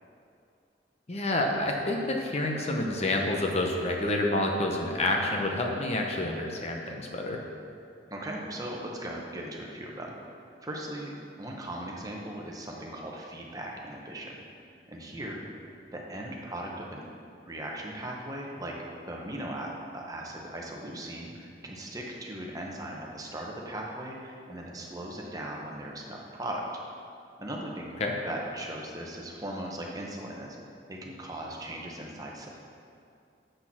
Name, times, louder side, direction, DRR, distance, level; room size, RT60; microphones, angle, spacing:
voice 1, 1.1-7.4 28.0-28.1, left 1 dB, 35° left, 1 dB, 0.9 m, -28 dB
voice 2, 8.1-10.1 10.6-14.4 14.9-15.4 15.9-17.1 17.5-18.7 19.1-26.6 27.4-28.0 28.2-30.6 30.9-32.5, right 1 dB, 20° right, -2 dB, 1.1 m, -38 dB
7.9 x 6.6 x 6.1 m, 2.5 s
head